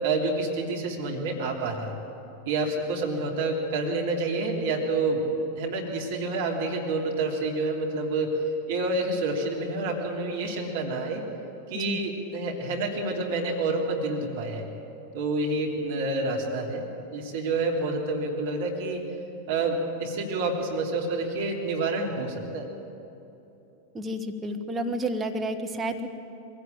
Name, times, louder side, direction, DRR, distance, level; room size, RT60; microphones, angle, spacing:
voice 1, 0.0-1.9 2.4-5.2 5.6-8.4 8.7-11.2 11.7-14.7 15.1-16.8 17.1-19.0 19.5-22.7, right 2 dB, 55° right, 0 dB, 3.1 m, -28 dB
voice 2, 23.9-26.1, right 1 dB, 15° right, 3 dB, 1.7 m, -30 dB
22.5 x 16.0 x 8.9 m, 2.9 s
figure-of-eight pair, 90°, 0 cm